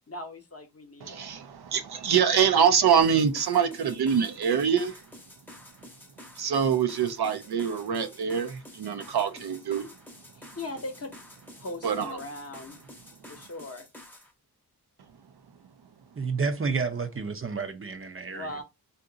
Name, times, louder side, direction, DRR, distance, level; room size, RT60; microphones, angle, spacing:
voice 1, 0.1-1.3 10.3-11.1 11.6-12.8 13.3-13.9 18.3-18.6, left 2 dB, 40° left, 0.9 m, -39 dB
voice 2, 1.0-5.1 6.4-9.9 11.8-12.2, right 7 dB, 75° right, 0.6 m, -25 dB
sound 1, 3.0-14.3, left 1 dB, 5° left, 0.8 m, -49 dB
voice 3, 16.2-18.5, right 4 dB, 35° right, 0.6 m, -30 dB
2.7 x 2.5 x 3.8 m
cardioid pair, 60°, 39 cm